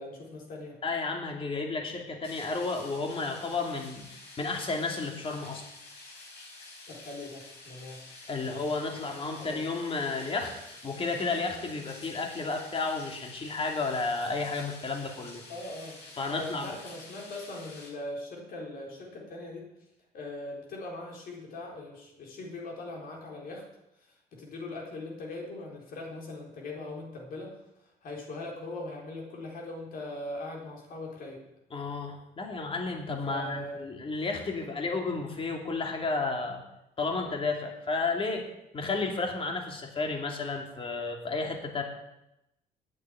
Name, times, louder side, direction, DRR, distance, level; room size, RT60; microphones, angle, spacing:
voice 1, 0.0-0.8 6.9-8.0 8.4-8.7 9.4-9.6 15.5-19.7 20.1-23.6 24.0-31.4 33.3-33.8, left 2 dB, 60° left, -1 dB, 4.2 m, -41 dB
voice 2, 0.8-5.6 8.3-15.4 16.2-16.7 31.7-36.6 37.0-38.4 38.7-41.8, left 3 dB, 30° left, 3 dB, 2.5 m, -32 dB
sound 1, 2.2-17.9, left 2 dB, 75° left, 5.2 m, -49 dB
9.1 x 8.3 x 9.1 m, 0.88 s
cardioid pair, 110°, 17 cm